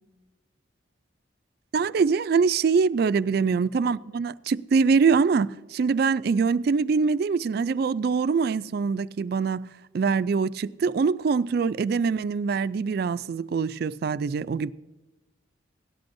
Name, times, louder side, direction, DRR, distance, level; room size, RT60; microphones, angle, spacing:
voice 1, 1.7-9.7 9.9-14.7, right 5 dB, 50° right, 0.3 m, -24 dB
18.0 x 12.0 x 2.6 m
head